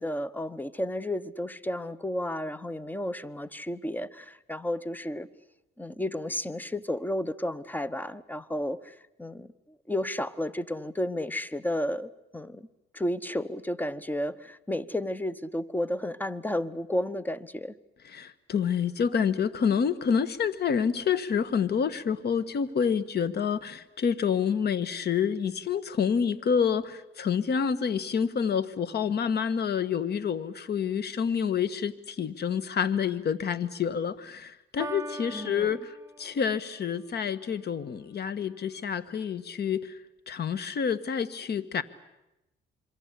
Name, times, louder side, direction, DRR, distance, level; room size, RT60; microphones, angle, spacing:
voice 1, 0.0-5.3 5.8-9.5 9.9-12.7 12.9-17.7 35.3-35.8, left 1 dB, 10° left, 17 dB, 1.0 m, -32 dB
voice 2, 18.1-40.0 40.3-41.8, left 7 dB, 55° left, 15 dB, 1.5 m, -28 dB
Piano, 34.8-36.8, right 1 dB, 15° right, 1.2 m, -41 dB
27.0 x 23.5 x 8.3 m, 0.91 s
cardioid pair, 90°, 20 cm